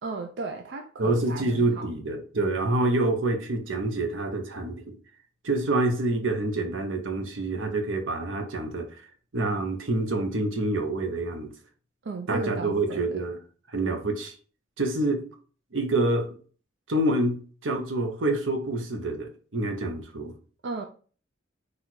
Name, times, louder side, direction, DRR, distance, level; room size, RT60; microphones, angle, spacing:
voice 1, 0.0-1.8 12.0-13.1 20.6-20.9, right 3 dB, 60° right, 0.4 m, -35 dB
voice 2, 1.0-4.9 5.4-8.9 9.3-11.5 12.3-13.4 13.7-14.3 14.8-15.2 15.7-16.3 16.9-20.3, right 2 dB, 90° right, 0.9 m, -27 dB
4.2 x 2.5 x 4.4 m
head